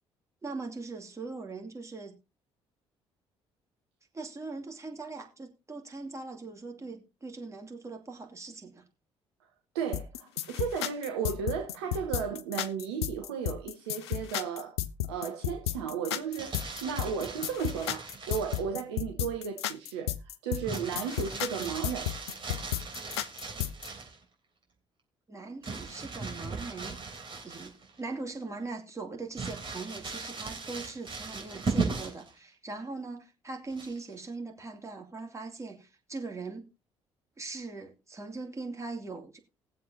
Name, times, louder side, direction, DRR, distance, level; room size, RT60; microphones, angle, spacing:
voice 1, 0.4-2.2 4.1-8.8 25.3-27.0 27.4-36.7 37.4-39.4, right 3 dB, 20° right, 2.6 m, -40 dB
voice 2, 9.7-14.8 15.1-22.1, right 7 dB, 70° right, 1.0 m, -34 dB
sound 1, 9.9-23.9, left 12 dB, 75° left, 0.5 m, -33 dB
Crumpling crinkling, 16.1-18.7 20.6-24.2 25.6-28.0 28.4-28.5 29.3-32.3 33.7-34.2, right 4 dB, 35° right, 3.5 m, -38 dB
20.0 x 7.5 x 2.8 m
figure-of-eight pair, 45°, 14 cm